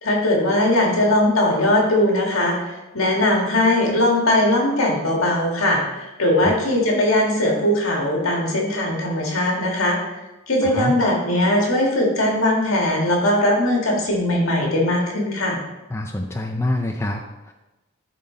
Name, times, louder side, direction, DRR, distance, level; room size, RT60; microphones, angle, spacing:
voice 1, 0.0-10.0 10.5-15.6, left 1 dB, 75° left, -1 dB, 1.8 m, -20 dB
voice 2, 10.6-10.9 15.9-17.5, left 1 dB, 10° left, 3 dB, 0.3 m, -26 dB
11.0 x 4.0 x 3.8 m, 1.0 s
head